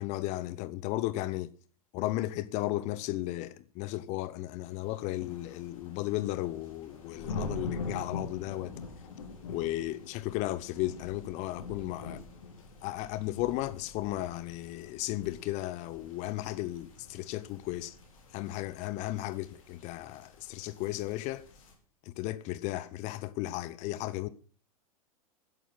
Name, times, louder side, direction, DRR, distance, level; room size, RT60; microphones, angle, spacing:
voice 1, 0.0-1.5 1.9-8.7 9.5-12.2 12.8-18.0 18.3-21.5 22.0-24.3, left 16 dB, 40° left, 0.9 m, -35 dB
sound 1, 4.6-21.7, left 4 dB, 60° left, 4.8 m, -44 dB
11.0 x 11.0 x 7.6 m
figure-of-eight pair, 95°, 19 cm